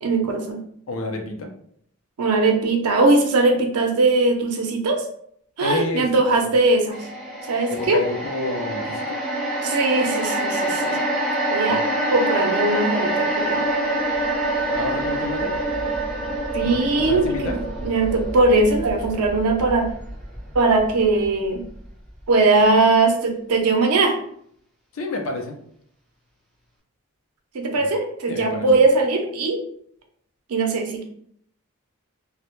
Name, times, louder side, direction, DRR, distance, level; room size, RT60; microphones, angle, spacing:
voice 1, 0.0-0.6 2.2-5.1 5.6-7.0 7.5-8.0 9.6-11.0 11.5-11.8 12.1-13.7 16.5-19.9 20.5-21.6 22.3-24.2 27.5-29.6 30.5-31.0, right 3 dB, 85° right, 3 dB, 0.5 m, -20 dB
voice 2, 0.9-1.5 5.6-6.1 7.7-9.2 11.7-11.8 14.7-15.5 16.6-17.6 24.9-25.5 28.3-28.7, left 2 dB, 60° left, 3 dB, 0.4 m, -29 dB
sound 1, 6.9-21.3 21.6-21.8, right 1 dB, 5° left, 1.0 m, -26 dB
2.1 x 2.0 x 2.9 m, 0.67 s
head